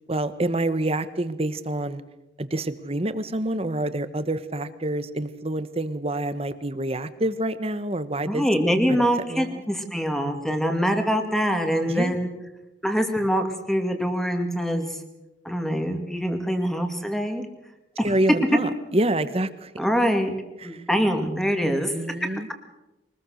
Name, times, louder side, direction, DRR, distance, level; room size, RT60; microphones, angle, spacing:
voice 1, 0.1-2.0 2.4-8.4 8.9-9.6 11.8-12.2 18.0-19.7 21.6-22.5, right 1 dB, 35° right, 12 dB, 1.2 m, -27 dB
voice 2, 8.2-12.3 12.8-15.0 15.4-17.5 18.0-18.1 19.8-20.3 20.6-22.3, equal, ahead, 5 dB, 2.4 m, -24 dB
23.5 x 20.0 x 6.5 m, 0.98 s
head